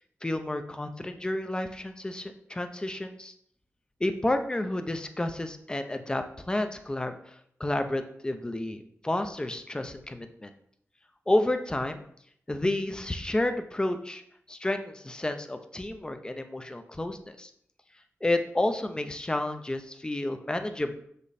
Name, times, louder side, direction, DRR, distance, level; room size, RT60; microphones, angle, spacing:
voice 1, 0.2-3.3 4.0-10.5 11.3-12.0 12.5-14.2 14.5-17.5 18.2-20.9, left 1 dB, 15° left, 7 dB, 0.7 m, -30 dB
6.8 x 5.2 x 4.2 m, 0.68 s
wide cardioid pair, 125°, 5 cm